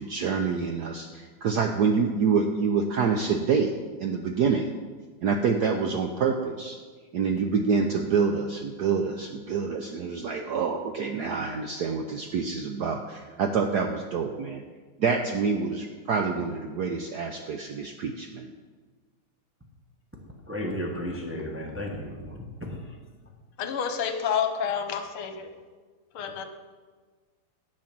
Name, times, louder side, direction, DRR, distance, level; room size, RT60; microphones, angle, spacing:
voice 1, 0.0-3.7 4.0-4.7 5.2-6.8 7.1-14.6 15.0-18.5, right 5 dB, 70° right, 5 dB, 1.0 m, -27 dB
voice 2, 20.5-22.8, equal, 10° right, -1 dB, 0.8 m, -34 dB
voice 3, 23.6-25.5 26.1-26.4, left 7 dB, 75° left, 7 dB, 1.8 m, -29 dB
11.0 x 7.7 x 6.0 m, 1.4 s
omnidirectional pair, 2.4 m